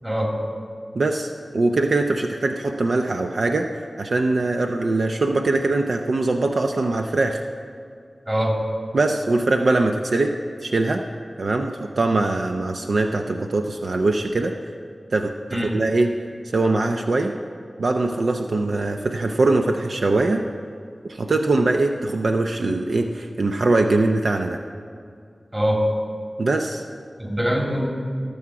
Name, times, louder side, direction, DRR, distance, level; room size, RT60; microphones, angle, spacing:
voice 1, 0.0-0.4 8.3-8.6 15.5-15.8 25.5-25.9 27.2-27.9, equal, 25° right, -1 dB, 2.6 m, -23 dB
voice 2, 0.9-7.4 8.9-10.3 10.6-11.0 11.4-14.5 15.1-15.3 15.7-16.1 16.4-17.3 17.8-20.5 21.0-24.6 26.4-26.8, right 2 dB, 75° right, 4 dB, 0.6 m, -22 dB
18.5 x 7.1 x 4.8 m, 2.3 s
wide cardioid pair, 70°, 0 cm